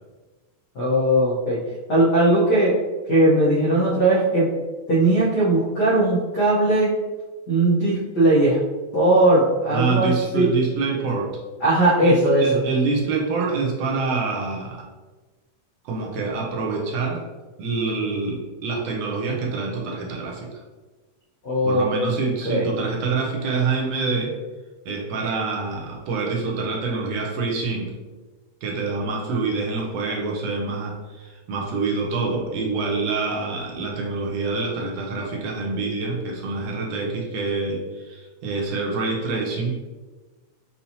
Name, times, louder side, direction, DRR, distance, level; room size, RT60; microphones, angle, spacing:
voice 1, 0.7-1.6 1.9-2.8 3.1-4.5 4.9-7.0 7.5-8.6 8.9-10.5 11.6-12.5 21.4-21.9 22.4-22.7, right 1 dB, 90° left, -7 dB, 0.9 m, -18 dB
voice 2, 9.7-11.4 12.0-14.8 15.9-17.2 17.6-20.6 21.6-24.3 24.9-27.9 28.6-39.8, right 4 dB, 75° right, -1 dB, 1.6 m, -26 dB
7.0 x 2.7 x 2.8 m, 1.3 s
omnidirectional pair, 3.3 m